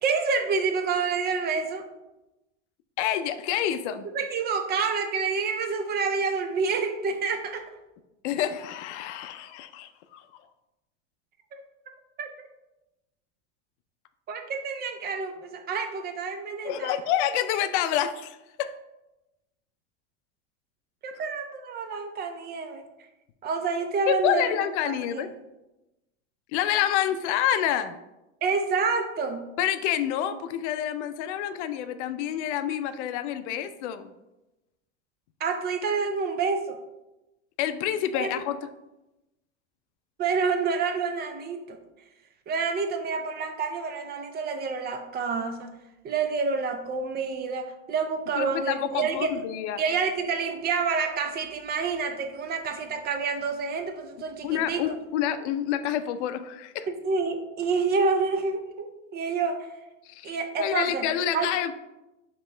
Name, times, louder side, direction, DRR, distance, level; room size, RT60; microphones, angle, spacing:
voice 1, 0.0-1.9 4.0-7.7 11.5-12.5 14.3-17.0 21.0-22.9 23.4-24.6 24.8-25.3 28.4-29.4 35.4-36.8 38.1-38.4 40.2-41.8 42.5-45.8 46.0-49.4 49.8-54.8 56.9-59.7 60.2-61.1 61.3-61.5, right 5 dB, 25° right, 7 dB, 0.5 m, -28 dB
voice 2, 3.0-4.1 8.2-10.2 16.6-18.7 24.1-25.3 26.5-28.0 29.6-34.1 37.6-38.6 48.3-49.8 54.4-56.9 60.1-61.7, left 10 dB, 70° left, 11 dB, 0.5 m, -28 dB
5.2 x 2.9 x 3.2 m, 0.99 s
supercardioid pair, 115°, 36 cm